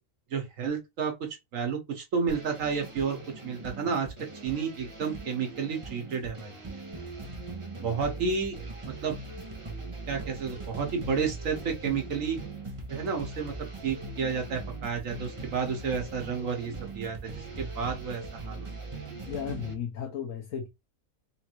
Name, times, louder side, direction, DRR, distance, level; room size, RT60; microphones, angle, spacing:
voice 1, 0.3-3.2 3.4-4.1 4.4-6.5 7.8-8.5 8.9-9.2 10.1-12.4 12.9-13.5 13.8-18.7, right 5 dB, 80° right, 1.4 m, -31 dB
sound 1, 2.3-19.7, right 3 dB, 25° right, 0.9 m, -40 dB
voice 2, 19.3-20.7, left 8 dB, 80° left, 1.2 m, -34 dB
3.8 x 2.5 x 4.4 m
omnidirectional pair, 1.4 m